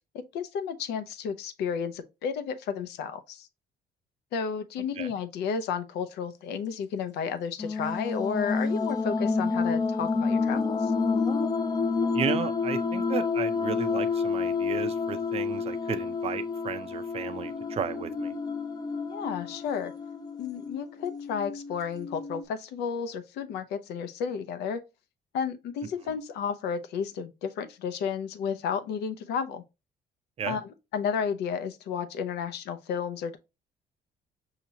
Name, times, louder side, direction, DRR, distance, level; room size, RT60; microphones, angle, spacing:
voice 1, 0.1-3.5 4.3-10.9 19.1-19.9 20.4-24.8 25.3-29.6 30.5-33.4, left 6 dB, 80° left, 0.6 m, -32 dB
sound 1, 7.6-22.4, left 4 dB, 25° left, 0.5 m, -29 dB
voice 2, 12.1-18.3 30.4-30.6, right 8 dB, 35° right, 0.5 m, -34 dB
5.6 x 2.9 x 2.8 m
cardioid pair, 110°, 17 cm